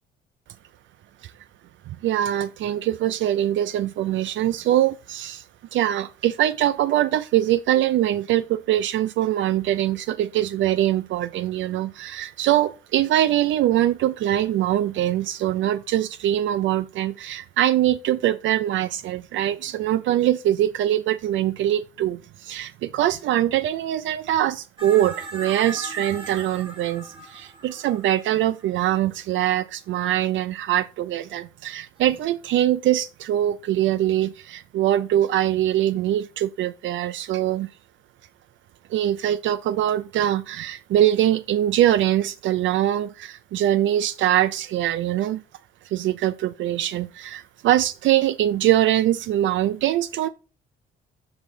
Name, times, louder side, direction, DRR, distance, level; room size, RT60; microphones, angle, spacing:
voice 1, 1.9-5.4 5.7-37.7 38.9-45.4 45.9-50.3, right 12 dB, 75° right, 0.4 m, -23 dB
sound 1, 24.8-29.2 32.0-32.2, right 3 dB, 25° right, 1.7 m, -39 dB
7.2 x 4.9 x 3.8 m
cardioid pair, 90°, 20 cm